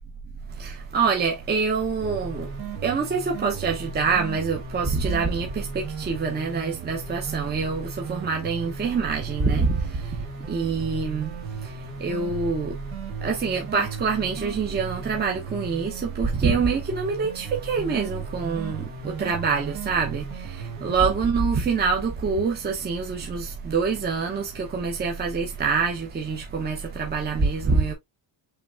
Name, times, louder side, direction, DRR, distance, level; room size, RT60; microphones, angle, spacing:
voice 1, 0.6-2.5 2.8-9.8 10.5-11.3 12.0-12.7 13.2-27.9, right 5 dB, 20° right, 0.8 m, -25 dB
sound 1, 2.0-21.2, right 5 dB, 80° right, 2.2 m, -37 dB
5.8 x 3.4 x 2.4 m
cardioid pair, 140°, 44 cm